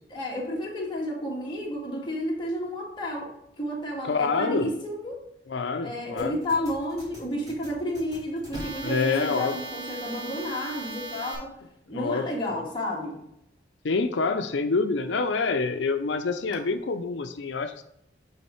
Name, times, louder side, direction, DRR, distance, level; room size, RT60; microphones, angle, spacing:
voice 1, 0.1-3.3 3.6-5.2 5.8-11.5 11.9-13.2, left 1 dB, 25° left, -3 dB, 1.8 m, -31 dB
voice 2, 4.0-4.7 5.5-6.4 8.8-9.6 11.9-12.6 13.8-17.8, left 4 dB, 80° left, 8 dB, 0.5 m, -27 dB
sound 1, 6.2-11.4, right 2 dB, 25° right, 2.3 m, -39 dB
8.6 x 3.5 x 4.3 m, 0.77 s
head